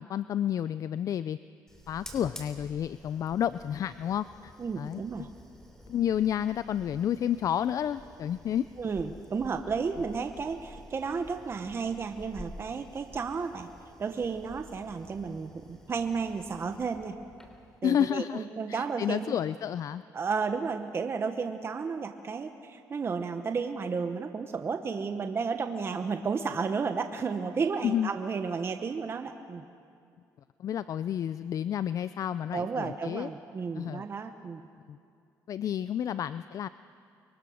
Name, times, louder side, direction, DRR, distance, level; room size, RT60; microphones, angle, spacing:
voice 1, 0.0-1.4 1.9-5.0 5.9-8.7 17.8-20.0 27.8-28.1 30.6-33.3 33.8-34.0 34.9-35.0 35.5-36.7, left 10 dB, 55° left, 15 dB, 0.4 m, -30 dB
Fire, 1.7-17.8, equal, 5° left, 3.3 m, -50 dB
voice 2, 4.6-5.3 8.8-13.7 14.0-17.2 17.8-19.3 20.1-29.6 32.5-34.6, right 5 dB, 35° right, 7 dB, 1.1 m, -32 dB
24.0 x 23.5 x 6.5 m, 2.4 s
cardioid pair, 100°, 7 cm